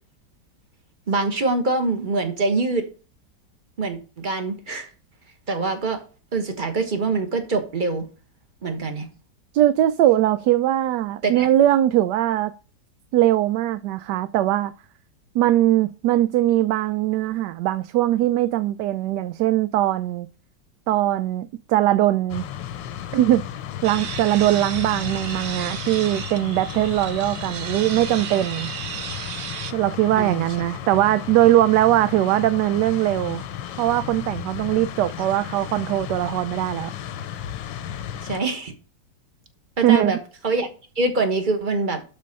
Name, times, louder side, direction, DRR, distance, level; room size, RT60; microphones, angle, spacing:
voice 1, 1.1-2.9 3.8-4.9 5.5-6.0 6.3-8.1 8.6-9.1 11.2-11.5 30.1-30.5 38.2-38.7 39.8-40.2 40.4-40.7 41.0-42.0, right 3 dB, 30° right, 1.3 m, -24 dB
voice 2, 9.5-12.5 13.1-14.7 15.3-20.3 20.9-22.4 23.1-23.4 23.8-28.7 29.7-33.4 33.8-36.9 39.8-40.1, right 13 dB, 75° right, 1.1 m, -20 dB
sound 1, 22.3-38.4, left 10 dB, 90° left, 1.5 m, -34 dB
sound 2, 23.8-29.7, right 9 dB, 60° right, 0.8 m, -34 dB
12.0 x 4.2 x 5.3 m
omnidirectional pair, 1.9 m